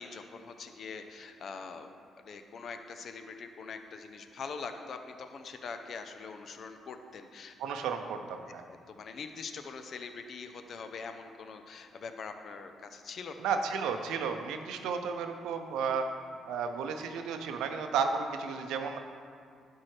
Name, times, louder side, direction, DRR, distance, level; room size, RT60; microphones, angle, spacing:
voice 1, 0.0-1.9 2.2-7.5 8.7-13.4, left 5 dB, 55° left, 7 dB, 0.6 m, -43 dB
voice 2, 7.6-8.6 13.4-16.1 16.5-19.0, right 6 dB, 90° right, 6 dB, 0.5 m, -33 dB
11.5 x 4.5 x 3.2 m, 2.3 s
cardioid pair, 90°, 0 cm